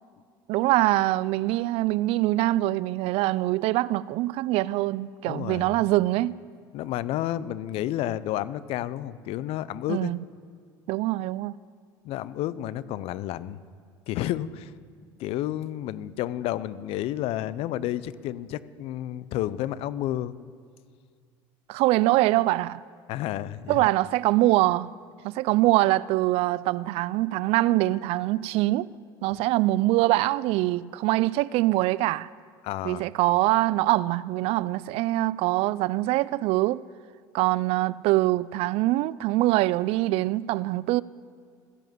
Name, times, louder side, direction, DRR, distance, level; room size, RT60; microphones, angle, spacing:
voice 1, 0.5-6.4 9.9-10.2 10.9-11.5 21.7-22.8 23.7-24.9 25.2-28.9 29.2-32.3 32.8-36.9 37.3-41.0, right 17 dB, 65° right, 0.4 m, -24 dB
voice 2, 5.2-5.8 6.7-10.1 12.0-13.6 14.1-14.7 15.2-20.3 23.1-23.9 32.6-33.0, left 13 dB, 65° left, 0.6 m, -31 dB
15.0 x 10.5 x 7.8 m
hypercardioid pair, 80°, 11 cm